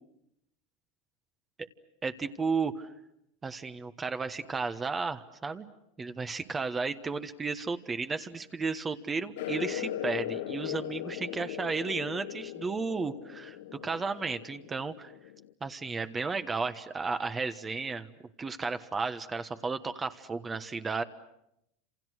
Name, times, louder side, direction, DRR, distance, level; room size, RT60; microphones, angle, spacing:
voice 1, 2.0-2.9 3.4-5.7 6.0-13.6 13.8-15.1 15.6-18.1 18.4-21.0, right 4 dB, 20° right, 9 dB, 1.3 m, -33 dB
sound 1, 9.4-15.5, left 12 dB, 80° left, 1.4 m, -38 dB
30.0 x 27.5 x 6.5 m, 0.80 s
supercardioid pair, 125°, 0 cm